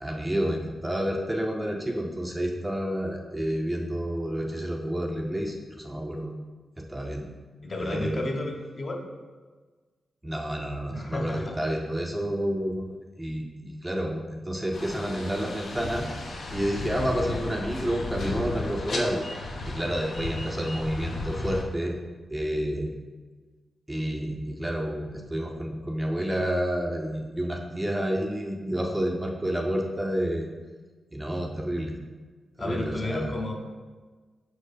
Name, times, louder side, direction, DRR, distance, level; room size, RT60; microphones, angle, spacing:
voice 1, 0.0-6.3 6.8-7.3 7.8-8.3 10.2-12.9 13.2-16.1 16.5-19.2 19.7-22.0 22.3-22.9 23.9-30.5 31.1-32.0 32.6-33.4, equal, 10° right, 1 dB, 0.6 m, -29 dB
voice 2, 7.6-9.0 10.9-11.6 32.6-33.5, left 2 dB, 40° left, 1 dB, 0.9 m, -32 dB
sound 1, 14.7-21.6, left 2 dB, 65° left, 0.9 m, -34 dB
5.7 x 4.4 x 5.0 m, 1.4 s
wide cardioid pair, 125°, 0 cm